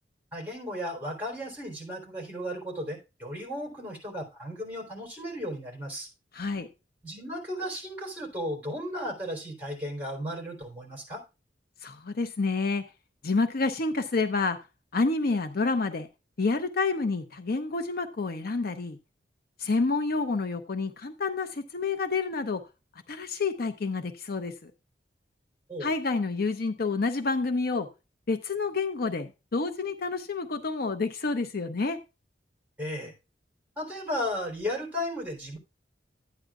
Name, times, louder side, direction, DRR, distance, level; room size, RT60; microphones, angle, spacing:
voice 1, 0.3-6.1 7.0-11.2 25.7-25.9 32.8-33.1 33.8-35.6, equal, 10° right, 3.7 m, -35 dB
voice 2, 6.3-6.7 11.8-12.8 13.2-14.6 14.9-16.1 16.4-19.0 19.6-22.6 23.1-24.7 25.8-27.9 28.3-32.0, left 3 dB, 55° left, 0.6 m, -28 dB
12.0 x 9.1 x 2.4 m
head